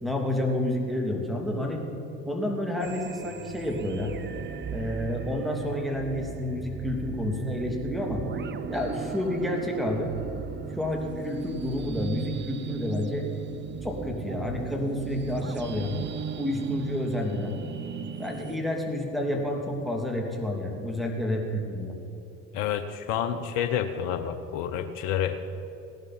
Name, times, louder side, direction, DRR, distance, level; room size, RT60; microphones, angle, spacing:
voice 1, 0.0-1.8 2.2-4.1 4.7-8.2 8.7-10.1 10.7-13.3 13.8-15.9 16.4-17.6 18.2-22.0, left 1 dB, ahead, 1 dB, 2.8 m, -29 dB
sound 1, 2.8-18.6, right 6 dB, 25° right, 0.7 m, -37 dB
voice 2, 22.5-25.4, left 9 dB, 65° left, 8 dB, 0.9 m, -29 dB
18.0 x 11.5 x 4.3 m, 2.8 s
hypercardioid pair, 65°, 40 cm